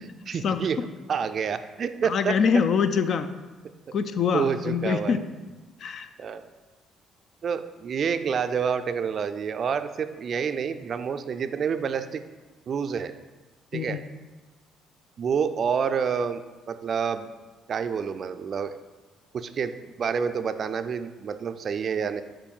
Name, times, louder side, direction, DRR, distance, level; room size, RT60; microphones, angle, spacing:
voice 1, 0.0-2.4 3.9-4.0 4.3-5.2 6.2-6.5 7.4-12.2 12.7-13.1 13.7-14.0 15.2-16.4 16.7-17.3 17.7-18.7 19.3-19.7 20.0-22.2, right 6 dB, 50° right, 10 dB, 0.3 m, -28 dB
voice 2, 2.0-3.3 3.9-5.2 5.8-6.1 13.7-14.0, left 6 dB, 60° left, 10 dB, 0.4 m, -24 dB
6.9 x 2.5 x 5.4 m, 1.2 s
cardioid pair, 85°, 0 cm